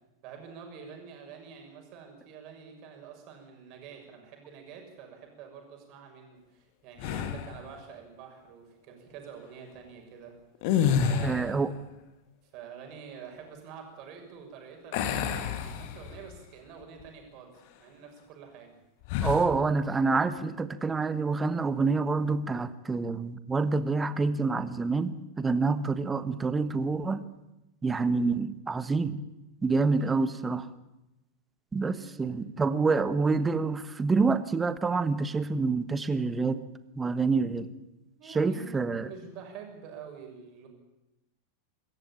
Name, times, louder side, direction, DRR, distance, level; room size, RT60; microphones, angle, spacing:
voice 1, 0.2-10.3 10.9-11.7 12.5-17.5 17.8-18.7 29.9-30.5 31.9-32.5 38.2-40.7, right 6 dB, 40° right, 3 dB, 6.7 m, -47 dB
sound 1, 7.0-7.6 10.5-11.6 14.9-16.3 16.8-17.0 19.0-19.5, left 8 dB, 45° left, 2.2 m, -29 dB
voice 2, 11.2-11.7 19.2-27.2 27.8-29.2 29.6-30.7 31.7-36.6 37.0-37.7 38.3-39.1, right 4 dB, 15° right, 14 dB, 1.3 m, -27 dB
25.0 x 14.5 x 8.9 m, 0.95 s
figure-of-eight pair, 90°, 0 cm